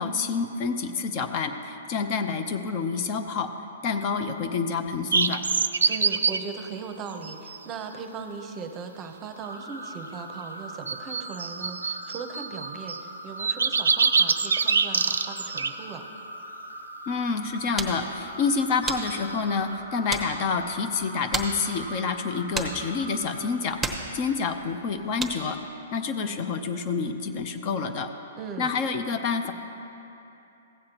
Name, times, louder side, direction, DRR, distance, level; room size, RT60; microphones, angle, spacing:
voice 1, 0.0-3.5 3.8-5.4 17.1-25.6 25.9-28.1 28.6-29.5, left 5 dB, 40° left, 7 dB, 0.6 m, -28 dB
sound 1, 5.1-6.4 7.2-7.6 10.9-13.0 13.4-15.7 18.8-19.2, right 5 dB, 90° right, 0.4 m, -25 dB
voice 2, 5.9-16.0 28.4-28.7, right 5 dB, 25° right, 6 dB, 0.7 m, -38 dB
sound 2, 9.4-23.5, right 1 dB, 90° left, 1.9 m, -41 dB
sound 3, 17.3-25.6, right 3 dB, 5° right, 0.9 m, -36 dB
15.5 x 7.5 x 2.9 m, 2.9 s
hypercardioid pair, 130°, 0 cm